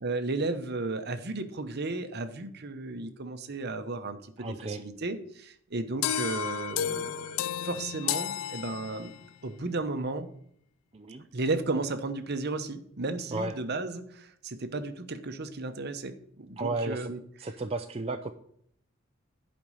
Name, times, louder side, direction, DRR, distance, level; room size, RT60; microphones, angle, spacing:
voice 1, 0.0-7.4 7.6-9.1 9.4-10.3 11.3-17.2, right 3 dB, 50° right, 9 dB, 1.0 m, -34 dB
voice 2, 4.4-4.8 10.9-11.2 13.3-13.5 16.6-17.1 17.4-18.3, right 2 dB, 30° right, 5 dB, 0.5 m, -33 dB
sound 1, 6.0-9.3, left 10 dB, 80° left, 0.4 m, -32 dB
10.5 x 5.3 x 6.3 m, 0.66 s
head